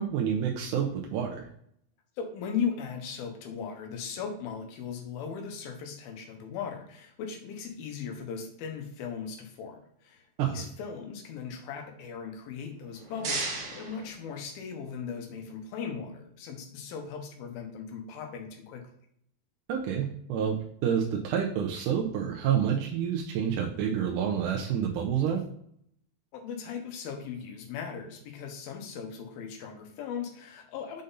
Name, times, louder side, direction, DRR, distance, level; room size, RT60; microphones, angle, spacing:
voice 1, 0.0-1.5 10.4-10.6 19.7-25.4, right 8 dB, 80° right, 0 dB, 2.0 m, -28 dB
voice 2, 2.2-18.9 26.3-31.0, left 6 dB, 85° left, 3 dB, 2.8 m, -38 dB
sound 1, 12.7-14.9, right 3 dB, 55° right, 1.8 m, -37 dB
6.6 x 3.9 x 3.9 m, 0.68 s
omnidirectional pair, 4.1 m